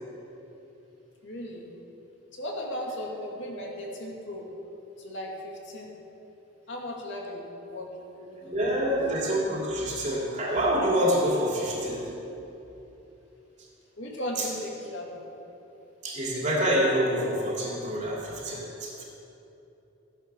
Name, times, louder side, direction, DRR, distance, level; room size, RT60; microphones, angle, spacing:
voice 1, 1.2-1.7 2.3-4.5 5.0-5.9 6.7-9.0 11.0-11.1 14.0-15.3, left 1 dB, 65° left, -2 dB, 2.4 m, -37 dB
voice 2, 8.4-12.1 14.4-14.5 16.0-19.0, equal, 35° right, -3 dB, 2.7 m, -27 dB
15.5 x 10.5 x 6.1 m, 3.0 s
head